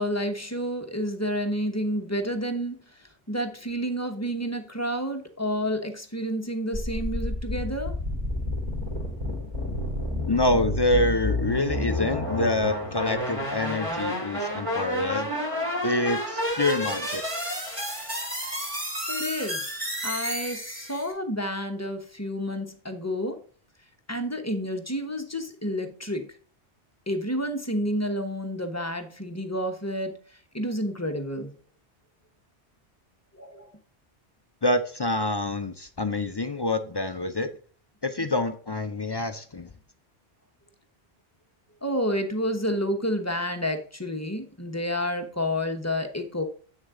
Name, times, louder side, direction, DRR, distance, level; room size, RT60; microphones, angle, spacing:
voice 1, 0.0-8.0 19.1-19.6 20.0-23.4 24.1-26.3 27.1-31.6 33.3-33.7 41.8-46.4, equal, 15° left, 5 dB, 1.0 m, -30 dB
sound 1, 6.7-21.1, left 1 dB, 30° right, 2.6 m, -30 dB
voice 2, 10.3-15.3 15.8-17.2 34.6-37.5 38.0-39.7, left 2 dB, 35° left, 9 dB, 0.4 m, -26 dB
8.4 x 6.4 x 3.7 m, 0.43 s
omnidirectional pair, 1.1 m